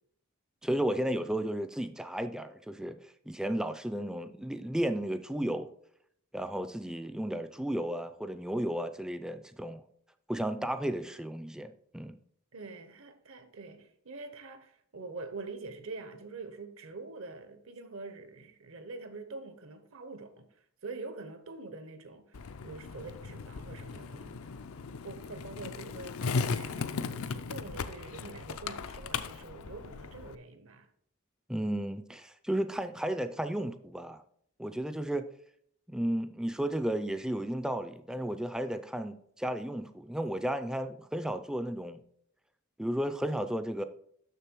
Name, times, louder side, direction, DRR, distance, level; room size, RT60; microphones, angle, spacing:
voice 1, 0.6-5.7 6.3-9.8 10.3-12.2 31.5-34.2 34.6-35.3 35.9-42.0 42.8-43.8, right 1 dB, 5° right, 0.3 m, -33 dB
voice 2, 12.5-24.5 24.9-30.9, right 3 dB, 65° right, 1.0 m, -45 dB
Skateboard, 22.3-30.3, left 4 dB, 80° left, 0.5 m, -37 dB
6.7 x 6.5 x 4.5 m
head